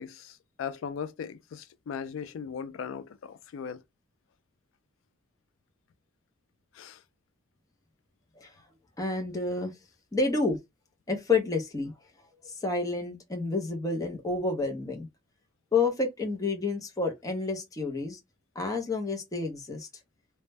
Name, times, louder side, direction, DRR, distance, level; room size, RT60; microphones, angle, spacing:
voice 1, 0.0-3.8 6.7-7.0, left 7 dB, 80° left, 0.3 m, -38 dB
voice 2, 9.0-9.7 10.1-10.6 11.1-11.9 12.4-15.1 15.7-18.2 18.6-19.9, left 3 dB, 20° left, 0.5 m, -29 dB
2.1 x 2.0 x 3.2 m
head